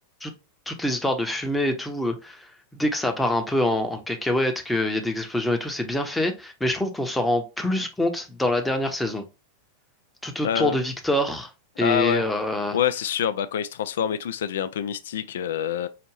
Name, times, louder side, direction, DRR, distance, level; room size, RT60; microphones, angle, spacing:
voice 1, 0.7-9.2 10.2-11.5 11.8-12.8, left 1 dB, 5° left, 0.8 m, -25 dB
voice 2, 10.4-10.8 11.8-12.2 12.7-15.9, left 9 dB, 60° left, 0.3 m, -26 dB
4.8 x 2.5 x 3.1 m
figure-of-eight pair, 90°, 0 cm